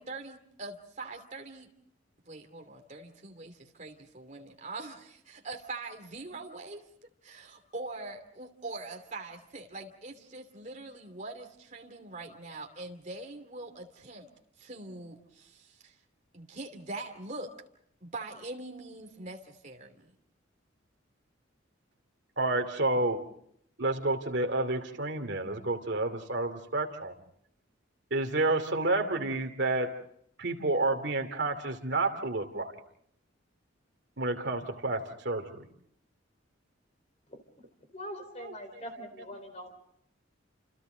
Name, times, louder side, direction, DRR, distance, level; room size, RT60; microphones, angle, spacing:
voice 1, 0.0-1.7 2.2-6.8 7.2-14.3 14.6-15.9 16.3-17.5 18.0-20.1, right 2 dB, 40° right, 3 dB, 2.8 m, -43 dB
voice 2, 22.4-23.2 23.8-27.1 28.1-29.9 30.4-32.7 34.2-35.7 38.4-38.8, right 2 dB, 60° right, 5 dB, 2.7 m, -30 dB
voice 3, 37.9-39.9, equal, 35° left, 7 dB, 4.3 m, -43 dB
29.5 x 28.5 x 3.9 m, 0.69 s
head